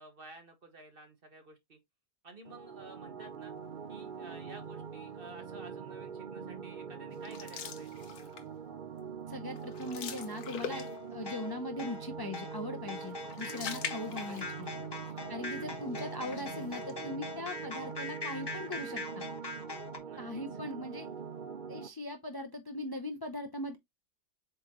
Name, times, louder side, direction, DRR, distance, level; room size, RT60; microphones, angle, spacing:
voice 1, 0.0-1.8 2.2-3.5 3.9-8.0 13.7-15.6 20.0-20.6, right 2 dB, 35° right, 1.5 m, -53 dB
sound 1, 2.4-21.9, right 6 dB, 75° right, 0.4 m, -43 dB
sound 2, 7.2-8.6 9.0-9.2 9.5-11.2 13.0-14.8 15.1-15.2 16.1-16.9, left 7 dB, 65° left, 1.3 m, -43 dB
voice 2, 9.3-14.7 15.3-19.2 20.2-21.1 21.7-23.8, left 1 dB, 35° left, 0.3 m, -40 dB
sound 3, 10.7-20.0, left 3 dB, 20° left, 0.8 m, -42 dB
7.7 x 4.1 x 3.0 m
omnidirectional pair, 1.8 m